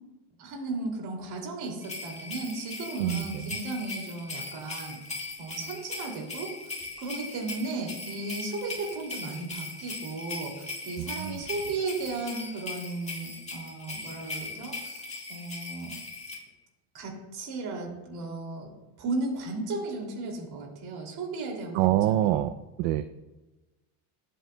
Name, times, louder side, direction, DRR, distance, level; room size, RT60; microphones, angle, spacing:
voice 1, 0.4-5.0 5.4-6.6 7.0-15.0 15.3-16.0 16.9-18.7 19.0-22.4, right 3 dB, 60° right, 0 dB, 2.7 m, -35 dB
sound 1, 1.8-16.4, left 3 dB, 15° left, 1.8 m, -39 dB
voice 2, 3.0-3.6 11.0-11.4 21.7-22.5 22.8-23.0, right 13 dB, 85° right, 9 dB, 0.6 m, -26 dB
20.0 x 7.7 x 2.2 m, 1.1 s
cardioid pair, 150°, 43 cm